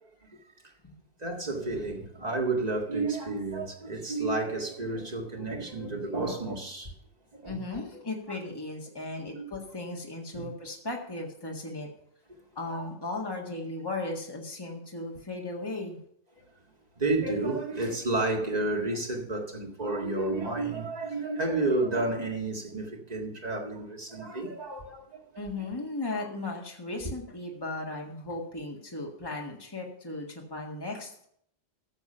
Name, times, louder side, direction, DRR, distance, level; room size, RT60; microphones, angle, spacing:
voice 1, 1.2-6.9 7.3-7.6 8.3-8.4 9.3-9.5 10.3-10.5 12.7-12.9 17.0-25.4, right 2 dB, 35° right, 2.1 m, -31 dB
voice 2, 7.4-11.9 12.6-16.0 25.4-31.3, left 2 dB, 20° left, 1.8 m, -36 dB
14.0 x 7.1 x 5.6 m
omnidirectional pair, 1.2 m